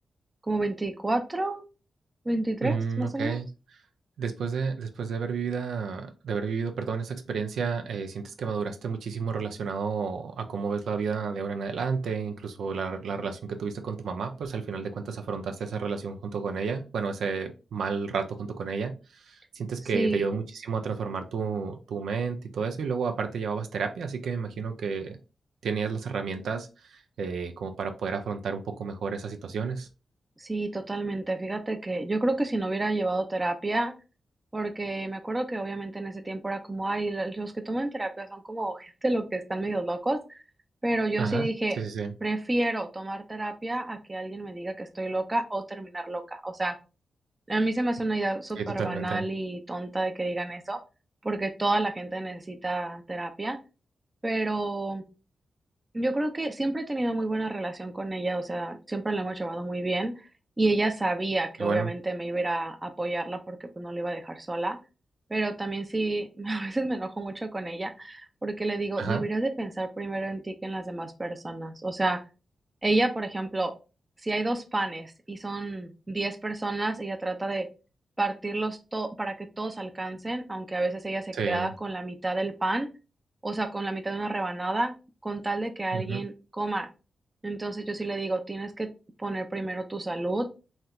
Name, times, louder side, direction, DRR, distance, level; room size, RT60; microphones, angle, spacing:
voice 1, 0.5-1.6 2.3-3.4 19.9-20.2 30.4-33.9 34.5-40.4 40.8-41.8 42.2-46.8 47.5-50.8 51.2-53.6 54.2-55.0 55.9-60.1 60.6-64.8 65.3-72.2 72.8-73.7 74.2-77.7 78.2-82.9 83.4-84.9 85.2-86.9 87.4-88.9 89.2-90.5, right 2 dB, 20° right, 6 dB, 0.5 m, -30 dB
voice 2, 2.6-3.5 4.2-25.2 25.6-29.9 41.2-41.5 41.8-42.1 48.6-49.2 61.6-61.9 69.0-69.2 81.3-81.7 85.9-86.2, right 5 dB, 90° right, 5 dB, 0.4 m, -31 dB
3.2 x 2.8 x 2.3 m, 0.31 s
cardioid pair, 90°, 0 cm